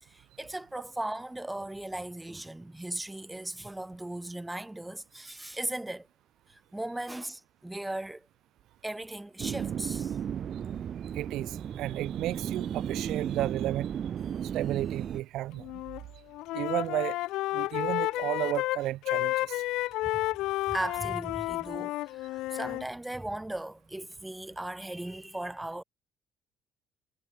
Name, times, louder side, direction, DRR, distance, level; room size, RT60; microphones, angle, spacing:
voice 1, 0.0-6.1 6.5-8.3 8.8-10.2 20.7-25.8, right 1 dB, 10° right, 2.8 m, -37 dB
sound 1, 9.4-15.2, right 8 dB, 50° right, 1.2 m, -34 dB
voice 2, 11.0-14.0 14.4-15.8 16.5-17.2 17.5-19.6, right 15 dB, 70° right, 1.3 m, -33 dB
Wind instrument woodwind instrument, 15.6-16.0 16.3-22.9, left 18 dB, 80° left, 2.3 m, -31 dB
supercardioid pair, 85°, 0 cm